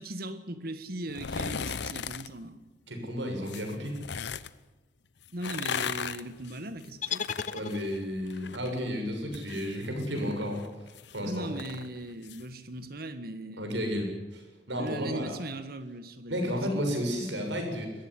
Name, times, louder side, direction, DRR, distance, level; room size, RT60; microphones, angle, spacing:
voice 1, 0.0-2.6 5.3-7.3 11.2-13.6 14.8-16.8, right 1 dB, 55° right, 11 dB, 1.7 m, -39 dB
sound 1, 1.1-2.3 3.4-4.5 5.3-8.7 9.0-12.4 12.8-12.9, left 6 dB, 70° left, 0.8 m, -37 dB
voice 2, 2.9-4.0 7.5-10.6 11.1-11.5 13.6-14.4 14.7-15.4 16.3-17.9, equal, 85° right, 3 dB, 6.7 m, -32 dB
sound 2, 7.0-8.3, left 7 dB, 45° left, 0.6 m, -35 dB
21.0 x 15.0 x 9.9 m, 1.2 s
head